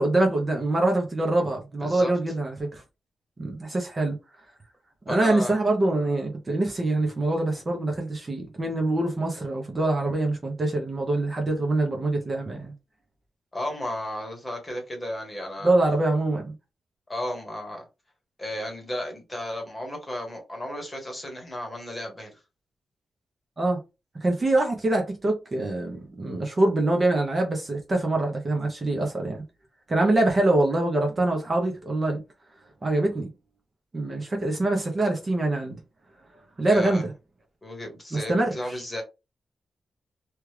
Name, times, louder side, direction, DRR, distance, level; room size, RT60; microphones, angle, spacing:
voice 1, 0.0-2.8 3.4-4.2 5.1-12.7 15.6-16.5 23.6-23.8 24.2-29.4 29.9-32.2 32.8-33.3 33.9-35.8 36.6-37.1 38.1-38.8, right 2 dB, 30° right, 0.8 m, -24 dB
voice 2, 1.8-2.1 5.1-5.6 13.5-15.7 17.1-17.8 18.4-22.4 36.7-37.0 37.6-39.0, left 1 dB, 15° left, 1.2 m, -34 dB
3.0 x 2.4 x 3.3 m
wide cardioid pair, 145°, 0 cm